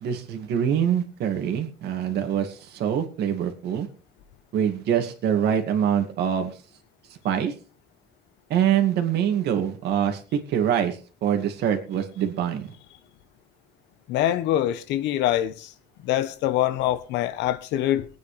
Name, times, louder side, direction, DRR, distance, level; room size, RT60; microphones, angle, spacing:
voice 1, 0.0-3.9 4.5-6.5 7.2-7.5 8.5-10.2 10.5-12.7, right 9 dB, 70° right, 2.3 m, -24 dB
voice 2, 14.1-15.7 16.0-18.1, left 12 dB, 90° left, 1.1 m, -24 dB
22.5 x 9.3 x 3.4 m
cardioid pair, 155°, 18 cm